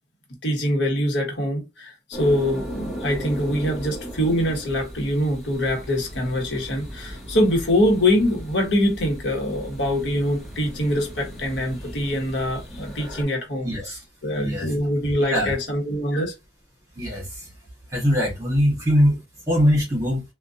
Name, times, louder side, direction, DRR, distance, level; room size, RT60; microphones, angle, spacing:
voice 1, 0.4-13.7 14.2-16.3, left 1 dB, 80° left, 1.2 m, -24 dB
sound 1, 2.1-13.2, equal, ahead, 2.0 m, -37 dB
voice 2, 13.6-14.0 14.3-14.7 15.2-15.6 16.9-17.5 17.9-20.2, equal, 20° right, 1.7 m, -22 dB
3.6 x 2.4 x 2.7 m
head